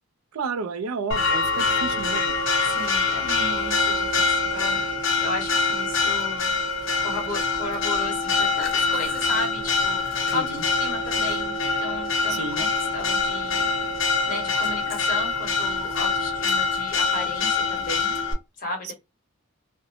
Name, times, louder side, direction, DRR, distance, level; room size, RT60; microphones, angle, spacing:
voice 1, 0.3-2.3 10.3-10.6 12.3-12.6 18.8-18.9, right 4 dB, 85° right, 0.5 m, -31 dB
Church bell, 1.1-18.3, left 4 dB, 60° left, 0.6 m, -24 dB
voice 2, 2.6-6.5 7.0-10.0 10.3-12.7 12.9-13.7 14.3-18.1 18.6-18.9, left 2 dB, 40° left, 1.1 m, -34 dB
2.6 x 2.1 x 2.7 m
head